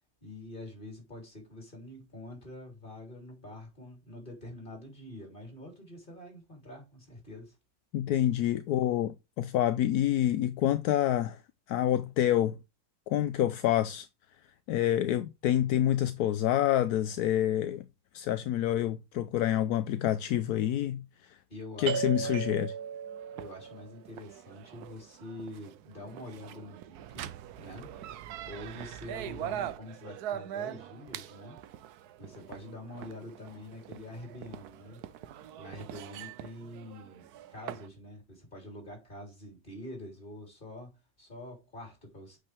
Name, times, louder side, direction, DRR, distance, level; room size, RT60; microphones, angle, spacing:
voice 1, 0.2-7.6 21.5-22.6 23.3-27.9 28.4-31.6 32.2-35.0 35.6-42.4, left 1 dB, 30° left, 4.0 m, -46 dB
voice 2, 7.9-11.4 11.7-12.6 13.1-14.1 14.7-17.8 18.1-21.4 21.8-22.7, left 12 dB, 80° left, 1.1 m, -27 dB
sound 1, 21.9-37.9, right 9 dB, 85° right, 1.2 m, -40 dB
8.6 x 5.7 x 3.4 m
omnidirectional pair, 1.7 m